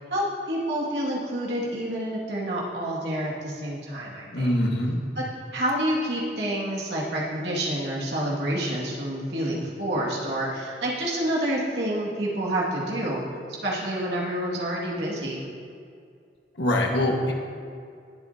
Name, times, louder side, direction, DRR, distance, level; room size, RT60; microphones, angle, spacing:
voice 1, 0.1-4.5 5.2-5.3 5.5-13.2 13.5-15.4, right 1 dB, 80° right, -5 dB, 2.1 m, -28 dB
voice 2, 4.3-5.0 16.6-17.3, left 1 dB, 80° left, 0 dB, 1.5 m, -23 dB
20.0 x 8.3 x 2.8 m, 2.3 s
head